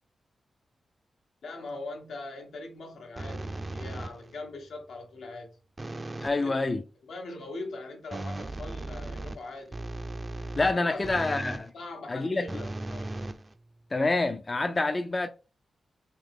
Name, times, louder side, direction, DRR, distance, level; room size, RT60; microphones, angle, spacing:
voice 1, 1.4-5.6 6.3-6.8 7.0-9.8 10.7-11.2 11.7-13.2, left 2 dB, 85° left, 1.1 m, -41 dB
sound 1, 3.2-4.4 5.8-6.4 8.1-11.7 12.5-14.0, right 2 dB, 30° right, 0.4 m, -37 dB
voice 2, 6.2-6.8 10.6-11.7 12.1-12.6 13.9-15.3, left 2 dB, 30° left, 0.4 m, -27 dB
3.7 x 2.8 x 3.6 m
cardioid pair, 85°, 0 cm